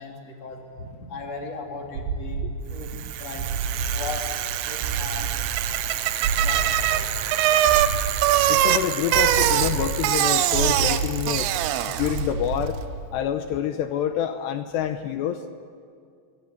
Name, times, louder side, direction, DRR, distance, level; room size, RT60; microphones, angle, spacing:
voice 1, 0.0-3.5 3.9-4.3 4.6-5.3 6.4-7.1, left 4 dB, 35° left, 1 dB, 3.7 m, -37 dB
sound 1, 2.0-13.3, right 4 dB, 70° right, 3.1 m, -30 dB
Bicycle, 2.9-12.3, right 12 dB, 90° right, 3.6 m, -23 dB
voice 2, 8.5-11.5 11.9-12.8 13.1-15.4, left 10 dB, 80° left, 8 dB, 2.6 m, -27 dB
27.5 x 22.0 x 8.4 m, 2.3 s
omnidirectional pair, 5.8 m